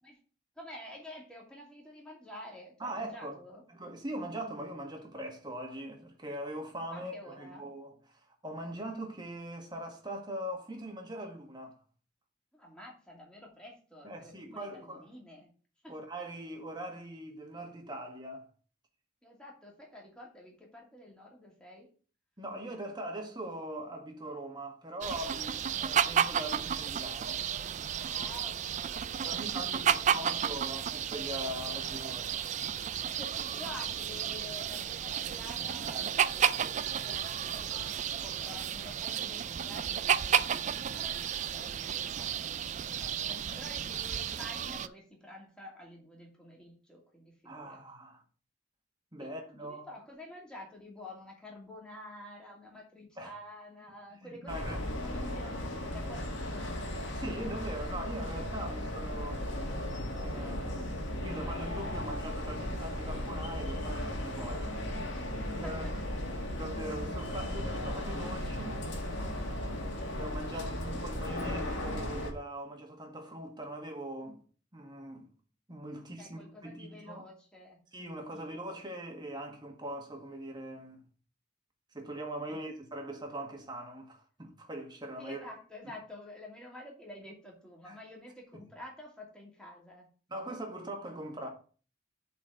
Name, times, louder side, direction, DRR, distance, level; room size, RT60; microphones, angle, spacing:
voice 1, 0.6-3.6 6.9-7.7 12.5-15.5 15.8-15.9 19.2-21.9 28.1-30.5 33.2-37.9 38.2-47.8 49.2-56.8 65.6-65.9 76.2-77.8 78.3-78.5 82.5-82.6 85.2-90.1, left 1 dB, 5° left, 2.5 m, -49 dB
voice 2, 2.8-3.4 3.7-11.8 14.0-15.1 15.9-18.4 22.4-27.4 29.2-32.5 42.2-42.3 43.3-43.6 47.4-48.2 49.1-49.9 53.2-53.3 54.2-54.8 57.1-59.8 60.2-64.8 65.6-65.8 66.4-68.8 70.1-74.4 74.7-75.3 75.7-77.2 77.9-81.0 81.9-85.5 87.8-88.0 90.3-91.5, right 1 dB, 20° right, 1.6 m, -41 dB
sound 1, 25.0-44.9, right 8 dB, 35° right, 0.3 m, -32 dB
sound 2, 54.5-72.3, left 1 dB, 65° left, 2.1 m, -36 dB
8.1 x 4.3 x 6.5 m
head